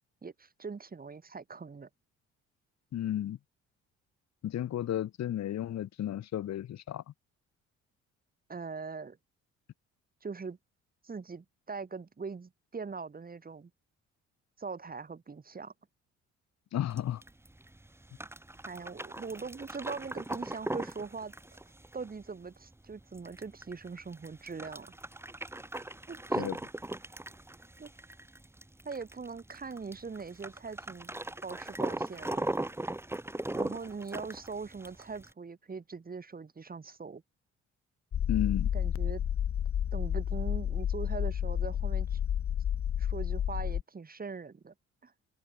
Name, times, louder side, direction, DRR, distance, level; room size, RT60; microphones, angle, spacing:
voice 1, 0.2-1.9 8.5-9.2 10.2-10.6 11.0-13.7 14.6-15.7 18.6-21.3 21.9-24.9 26.1-26.5 27.8-27.9 28.9-31.1 31.4-32.5 33.5-37.2 38.7-39.2 39.9-42.2 43.0-44.7 45.0-45.1, right 4 dB, 30° right, 3.5 m, -41 dB
voice 2, 2.9-3.4 4.4-7.0 16.7-17.2 26.4-26.6 38.3-38.7, left 11 dB, 65° left, 1.9 m, -33 dB
sound 1, 16.9-35.3, right 1 dB, 10° right, 1.6 m, -39 dB
sound 2, 38.1-43.8, left 9 dB, 50° left, 1.1 m, -31 dB
open air
cardioid pair, 85°, 29 cm